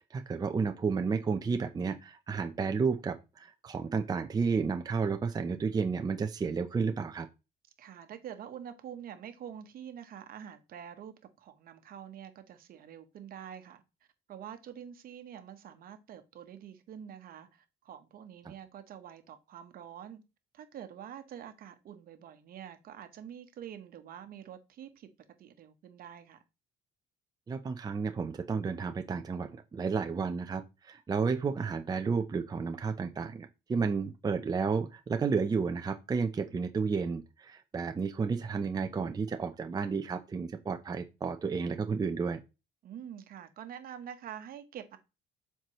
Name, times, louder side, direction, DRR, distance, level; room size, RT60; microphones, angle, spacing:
voice 1, 0.0-7.3 27.5-42.4, right 5 dB, 25° right, 0.6 m, -32 dB
voice 2, 7.8-13.8 14.3-20.2 20.5-25.1 25.4-26.4 42.8-45.0, right 9 dB, 60° right, 1.1 m, -46 dB
7.4 x 4.6 x 3.0 m
cardioid pair, 110°, 17 cm